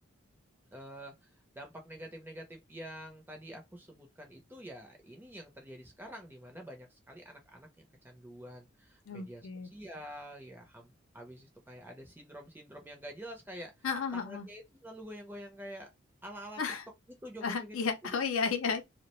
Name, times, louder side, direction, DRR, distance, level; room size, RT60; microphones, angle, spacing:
voice 1, 0.7-1.3 1.5-13.7 14.1-15.9 16.2-16.6 17.1-17.8 18.1-18.2, equal, 10° right, 0.5 m, -47 dB
voice 2, 9.1-9.7 13.8-14.5 16.6-16.8 17.4-18.8, left 5 dB, 80° left, 0.5 m, -33 dB
2.3 x 2.1 x 2.9 m
head